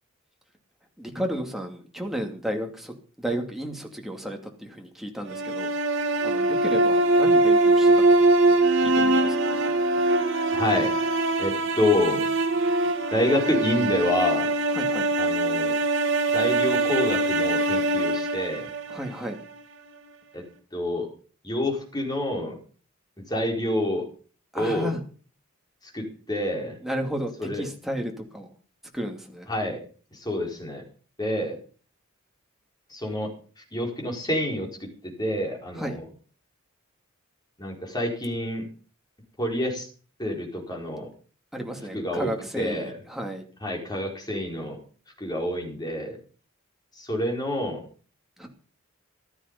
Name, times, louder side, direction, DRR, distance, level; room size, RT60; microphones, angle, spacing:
voice 1, 1.0-5.7 6.2-7.9 8.5-9.6 14.7-15.1 18.9-19.4 24.5-25.0 26.8-28.5 28.9-29.5 35.7-36.0 41.5-43.5 48.4-48.5, equal, ahead, 2 dB, 2.6 m, -33 dB
sound 1, 5.3-19.4, right 2 dB, 65° right, 2.3 m, -22 dB
voice 2, 10.5-10.9 11.4-12.3 13.1-14.5 15.2-15.7 16.3-18.7 20.3-20.4 20.7-21.1 21.4-22.5 23.3-24.0 24.5-24.9 25.9-26.8 27.4-27.7 29.5-29.8 30.1-30.8 31.2-31.6 32.9-33.3 33.7-36.1 37.6-38.6 39.4-39.9 40.2-41.1 41.9-42.3 42.6-42.9 43.6-44.8 45.2-46.2 47.0-47.8, left 1 dB, 20° left, 0 dB, 4.6 m, -27 dB
15.5 x 12.5 x 5.4 m, 0.41 s
head